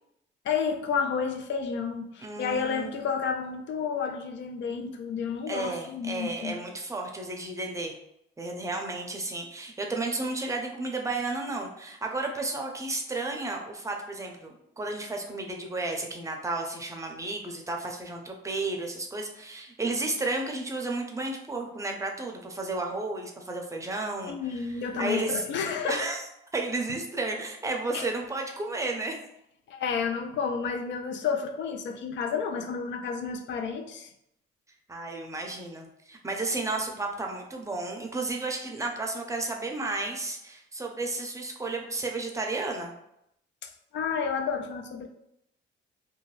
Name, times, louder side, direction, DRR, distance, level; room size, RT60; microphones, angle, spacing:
voice 1, 0.4-6.6 24.3-26.0 27.9-28.1 29.7-34.1 43.6-45.1, left 6 dB, 65° left, 6 dB, 0.5 m, -31 dB
voice 2, 2.2-3.0 5.5-8.0 8.4-25.4 25.9-26.3 26.5-29.1 34.9-42.9, right 2 dB, 15° right, 1 dB, 0.6 m, -33 dB
2.6 x 2.2 x 3.1 m, 0.79 s
cardioid pair, 90°, 20 cm